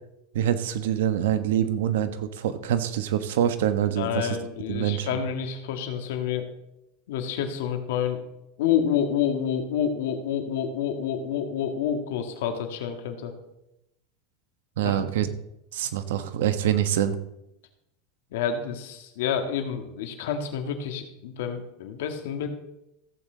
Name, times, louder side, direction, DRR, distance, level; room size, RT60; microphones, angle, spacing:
voice 1, 0.3-4.3 4.7-5.1 14.8-15.3 15.7-17.2, right 10 dB, 85° right, 11 dB, 1.0 m, -25 dB
voice 2, 4.0-6.5 7.1-8.2 8.6-13.3 14.8-15.0 18.3-22.5, left 8 dB, 80° left, 5 dB, 1.8 m, -28 dB
15.0 x 8.4 x 3.9 m, 0.85 s
supercardioid pair, 150°, 0 cm